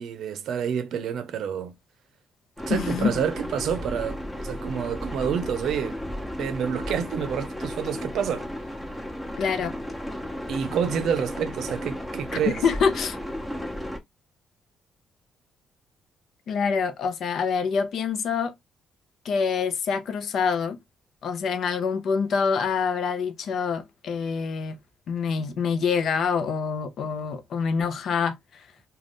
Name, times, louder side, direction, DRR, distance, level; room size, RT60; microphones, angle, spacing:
voice 1, 0.0-1.7 2.7-4.2 4.4-6.0 6.4-8.5 10.5-12.6, right 8 dB, 75° right, 0.5 m, -28 dB
sound 1, 2.6-14.0, equal, 15° left, 0.8 m, -34 dB
voice 2, 2.7-3.1 9.4-9.8 12.5-13.2 16.5-18.5 19.2-20.8 21.2-24.8 25.1-28.6, left 6 dB, 65° left, 0.6 m, -26 dB
2.5 x 2.3 x 3.4 m
cardioid pair, 90°, 0 cm